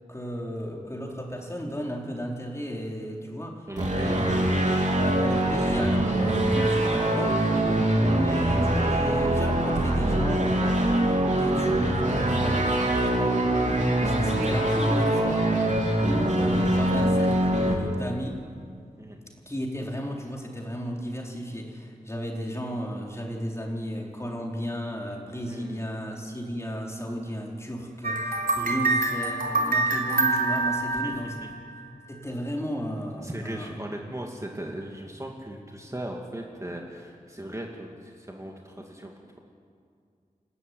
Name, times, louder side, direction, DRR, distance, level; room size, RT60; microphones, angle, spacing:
voice 1, 0.1-3.7 3.9-4.4 4.9-7.9 8.1-15.7 16.0-18.4 19.5-31.4 32.1-33.7, equal, 20° left, -1 dB, 4.6 m, -34 dB
voice 2, 3.7-4.2 19.0-19.2 25.5-25.8 28.7-28.9 31.0-31.1 31.4-31.5 33.2-39.4, right 1 dB, 20° right, 0 dB, 2.5 m, -38 dB
sound 1, 3.8-17.7, right 1 dB, 55° right, 3.6 m, -23 dB
sound 2, 28.0-31.8, right 3 dB, 70° right, 4.0 m, -26 dB
30.0 x 14.0 x 9.5 m, 2.2 s
wide cardioid pair, 65°, 15 cm